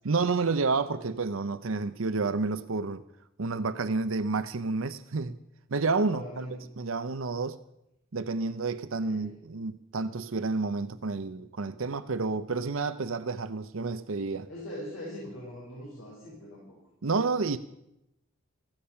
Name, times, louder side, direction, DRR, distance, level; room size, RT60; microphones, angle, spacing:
voice 1, 0.0-3.0 3.4-5.3 5.7-6.5 6.8-7.6 8.1-14.5 17.0-17.6, right 4 dB, 75° right, 0.7 m, -30 dB
voice 2, 6.1-6.6 9.0-9.3 14.5-16.6, equal, 80° left, 5.3 m, -41 dB
15.5 x 15.0 x 5.7 m
head